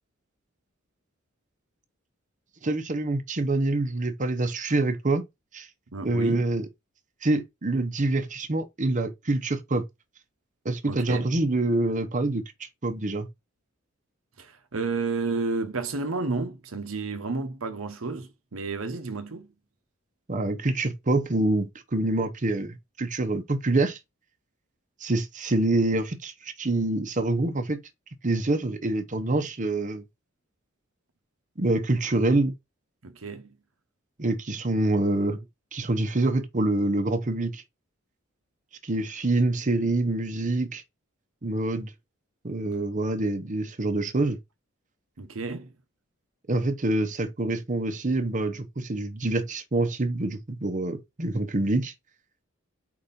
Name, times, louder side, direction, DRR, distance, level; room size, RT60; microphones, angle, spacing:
voice 1, 2.6-5.2 5.5-5.7 6.0-6.7 7.2-9.9 10.6-13.3 20.3-24.0 25.0-27.8 28.2-30.0 31.6-32.5 34.2-35.4 35.7-37.6 38.8-40.8 41.4-41.9 42.4-44.4 46.5-51.9, right 2 dB, 40° right, 0.9 m, -26 dB
voice 2, 5.9-6.5 10.8-11.3 14.4-19.5 33.0-33.6 45.2-45.7, right 3 dB, 75° right, 1.0 m, -31 dB
4.8 x 4.3 x 5.2 m
head